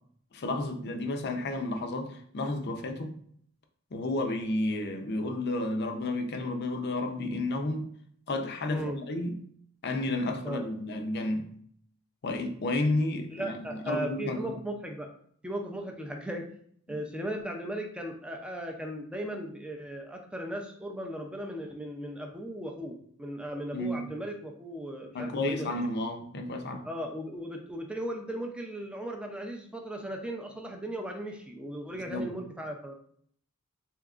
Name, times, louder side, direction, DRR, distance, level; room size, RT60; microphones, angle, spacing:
voice 1, 0.3-3.1 3.9-7.9 8.3-9.4 9.8-11.4 12.2-14.5 23.7-24.0 25.1-26.9 31.9-32.3, left 2 dB, 50° left, 5 dB, 0.5 m, -31 dB
voice 2, 13.3-15.1 15.4-16.5 16.9-25.7 26.8-32.9, right 1 dB, 5° right, 2 dB, 0.4 m, -37 dB
3.5 x 2.8 x 2.4 m, 0.62 s
head